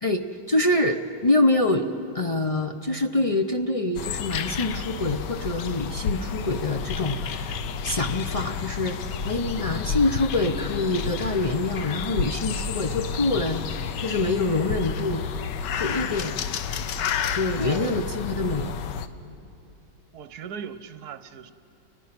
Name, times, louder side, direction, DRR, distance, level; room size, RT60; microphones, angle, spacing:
voice 1, 0.0-1.9 2.1-7.6 7.8-13.6 14.0-15.2 15.8-16.3 17.3-18.7, left 2 dB, 45° left, 5 dB, 0.4 m, -25 dB
sound 1, 4.0-19.1, left 6 dB, 85° left, 1.4 m, -30 dB
voice 2, 17.6-18.0 20.1-21.5, right 7 dB, 65° right, 11 dB, 1.3 m, -38 dB
30.0 x 20.5 x 5.9 m, 3.0 s
omnidirectional pair, 1.8 m